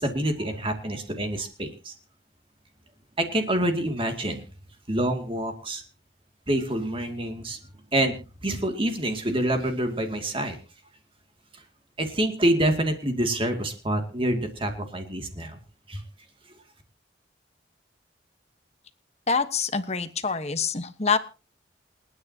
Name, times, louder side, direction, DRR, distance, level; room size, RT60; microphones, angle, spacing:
voice 1, 0.0-1.9 3.2-4.4 4.9-5.8 6.5-7.6 7.9-8.2 8.4-10.6 12.0-15.6 15.9-16.0, right 1 dB, 30° right, 5 dB, 2.4 m, -26 dB
voice 2, 19.3-21.2, left 5 dB, 35° left, 11 dB, 1.2 m, -26 dB
28.5 x 9.6 x 2.9 m, 0.32 s
head